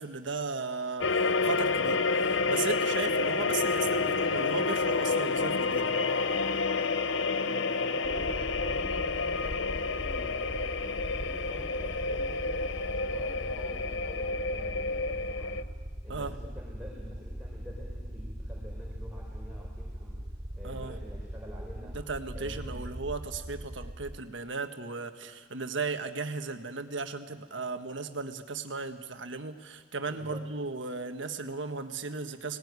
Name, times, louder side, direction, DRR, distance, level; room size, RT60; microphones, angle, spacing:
voice 1, 0.0-5.9 16.1-16.4 20.6-21.0 21.8-32.6, right 4 dB, 75° right, 7 dB, 1.5 m, -36 dB
sound 1, 1.0-15.6, left 4 dB, 75° left, 0.7 m, -29 dB
voice 2, 7.1-15.6 16.0-20.2 20.5-22.0 22.3-22.8 25.1-25.2 30.0-30.4, equal, 5° right, -4 dB, 4.3 m, -47 dB
sound 2, 8.0-24.2, equal, 45° right, 3.0 m, -40 dB
20.5 x 18.5 x 9.7 m, 1.5 s
head